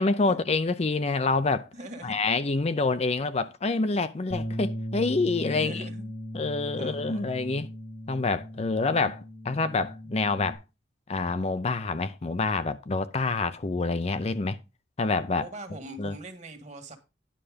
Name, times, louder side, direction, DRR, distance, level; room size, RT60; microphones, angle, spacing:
voice 1, 0.0-1.7 2.0-5.8 6.3-7.7 8.1-10.6 11.1-14.6 15.0-15.5 16.0-16.1, left 3 dB, 35° left, 0.5 m, -27 dB
voice 2, 1.7-2.2 5.4-6.1 6.8-7.3 15.4-17.0, right 1 dB, 40° right, 1.7 m, -42 dB
Bass guitar, 4.3-10.5, equal, 85° left, 3.1 m, -38 dB
10.0 x 5.7 x 5.0 m
head